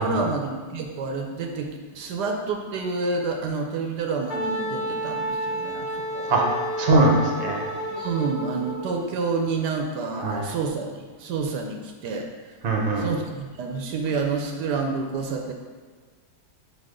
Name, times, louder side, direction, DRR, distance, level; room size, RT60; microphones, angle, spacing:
voice 1, 0.0-6.3 7.9-12.6 13.0-15.5, right 4 dB, 75° right, 3 dB, 1.2 m, -29 dB
Wind instrument woodwind instrument, 4.3-8.9, right 1 dB, 85° left, 1.4 m, -30 dB
voice 2, 6.3-7.6 10.1-10.5 12.6-13.1, right 2 dB, 45° right, 0 dB, 0.9 m, -22 dB
4.8 x 4.1 x 5.0 m, 1.5 s
omnidirectional pair, 1.9 m